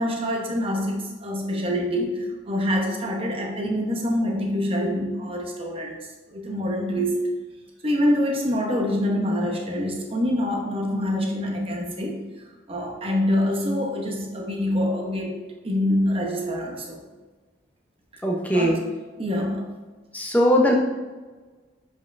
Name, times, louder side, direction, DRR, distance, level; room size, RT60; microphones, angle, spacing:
voice 1, 0.0-6.0 6.3-7.3 7.8-12.2 12.7-15.4 15.6-17.0 18.5-18.8 19.2-19.7, left 1 dB, 30° right, 0 dB, 0.9 m, -25 dB
voice 2, 18.2-18.8 20.1-20.7, equal, 10° left, -1 dB, 0.8 m, -20 dB
7.4 x 5.3 x 2.6 m, 1.3 s
head